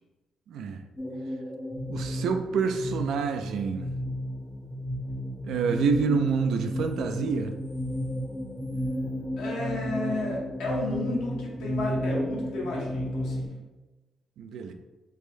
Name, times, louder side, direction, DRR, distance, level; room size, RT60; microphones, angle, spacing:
voice 1, 0.5-0.8 1.9-3.9 5.4-7.5 14.4-14.7, right 5 dB, 75° right, 7 dB, 0.3 m, -27 dB
sound 1, 1.0-13.5, equal, 10° left, 0.5 m, -33 dB
voice 2, 9.4-13.5, left 1 dB, 85° left, -3 dB, 0.9 m, -32 dB
3.4 x 2.6 x 3.2 m, 1.1 s
cardioid pair, 90°, 0 cm